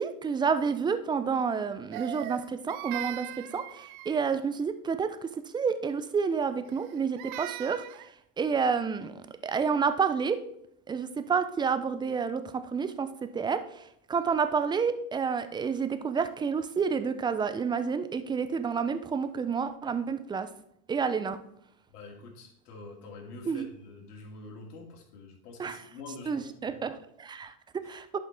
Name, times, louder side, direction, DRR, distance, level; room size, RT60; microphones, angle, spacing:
voice 1, 0.0-7.8 8.4-10.4 10.9-13.8 14.1-20.5 20.9-21.4 23.5-23.7 25.6-25.8 26.3-28.2, right 6 dB, 10° right, 11 dB, 0.3 m, -29 dB
Crying sobbing, 1.9-4.4 6.7-8.1, right 16 dB, 65° right, 0.6 m, -40 dB
voice 2, 21.9-26.8 27.8-28.0, left 3 dB, 80° left, 1 dB, 2.4 m, -46 dB
11.0 x 5.5 x 3.4 m, 0.73 s
hypercardioid pair, 100°, 46 cm